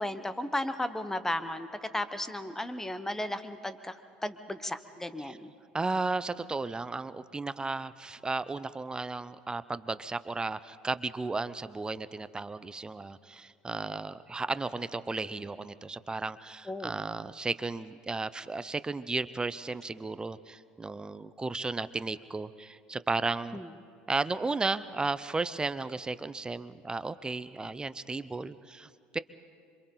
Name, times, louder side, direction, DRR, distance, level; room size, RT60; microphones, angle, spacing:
voice 1, 0.0-4.0 4.2-5.5 16.7-16.9 23.5-23.7, left 1 dB, 5° left, 12 dB, 1.2 m, -34 dB
voice 2, 5.7-23.6 24.1-29.2, right 3 dB, 15° right, 15 dB, 0.7 m, -34 dB
26.5 x 25.0 x 4.0 m, 2.3 s
figure-of-eight pair, 65°, 5 cm